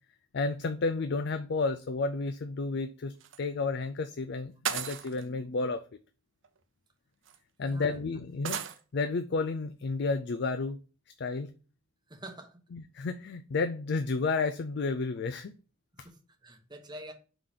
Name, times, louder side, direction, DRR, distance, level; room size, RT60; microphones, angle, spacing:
voice 1, 0.3-5.8 7.6-8.6 8.9-10.8 11.2-11.5 12.7-15.5 16.0-16.1, left 3 dB, 60° left, 0.4 m, -31 dB
sound 1, 3.2-3.4 4.6-5.2 6.4-6.5 7.3-7.4 8.4-8.8, right 8 dB, 70° right, 0.7 m, -34 dB
voice 2, 7.6-8.0 12.1-12.6 15.9-17.1, right 1 dB, 20° right, 1.1 m, -46 dB
5.0 x 3.8 x 5.7 m
head